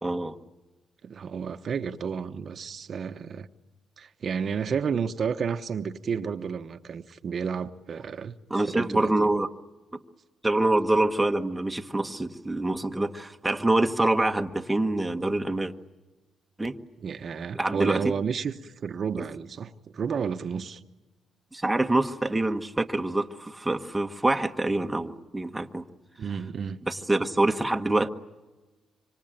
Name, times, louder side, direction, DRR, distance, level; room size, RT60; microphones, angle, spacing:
voice 1, 0.0-0.3 8.5-9.5 10.4-15.7 16.6-16.8 17.5-18.1 21.5-25.8 26.8-28.1, right 2 dB, 10° right, 1.3 m, -25 dB
voice 2, 1.0-3.5 4.0-8.3 8.7-9.3 17.0-20.8 26.2-26.8, right 6 dB, 50° right, 1.1 m, -31 dB
26.0 x 25.0 x 8.9 m
cardioid pair, 90°, 0 cm